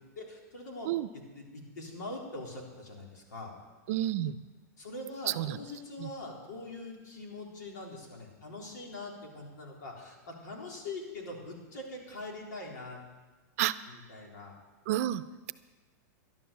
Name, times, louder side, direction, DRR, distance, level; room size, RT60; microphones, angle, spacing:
voice 1, 0.2-3.5 4.8-13.1 13.9-14.5, left 2 dB, 90° left, -1 dB, 3.9 m, -43 dB
voice 2, 3.9-4.4 5.3-5.6 6.0-6.1 13.6-13.8 14.9-15.5, right 13 dB, 55° right, 14 dB, 0.6 m, -30 dB
12.0 x 12.0 x 7.0 m, 1.3 s
supercardioid pair, 150°, 9 cm